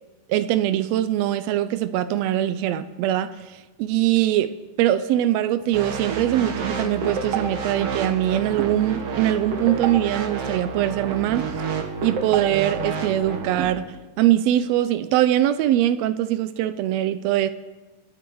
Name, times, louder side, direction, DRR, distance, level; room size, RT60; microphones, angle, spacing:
voice 1, 0.3-4.5 4.8-11.5 12.0-17.5, right 12 dB, 90° right, 1.5 m, -22 dB
sound 1, 5.7-13.7, right 5 dB, 55° right, 2.2 m, -29 dB
27.0 x 10.0 x 4.7 m
omnidirectional pair, 3.7 m